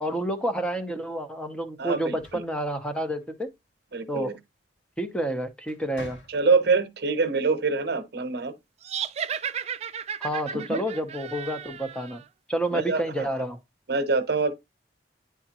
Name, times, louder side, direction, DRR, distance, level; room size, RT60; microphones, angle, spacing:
voice 1, 0.0-3.5 4.1-4.4 5.0-6.2 10.2-12.2 12.5-13.6, right 1 dB, 5° left, 0.7 m, -29 dB
voice 2, 1.8-2.4 3.9-4.3 6.3-8.5 10.5-10.8 12.7-13.4 13.9-14.5, right 4 dB, 65° right, 0.9 m, -25 dB
sound 1, 2.1-3.5 4.9-5.2 5.6-6.8, left 1 dB, 80° left, 3.2 m, -48 dB
sound 2, 8.8-12.2, right 8 dB, 40° right, 0.4 m, -34 dB
9.8 x 3.5 x 2.8 m
head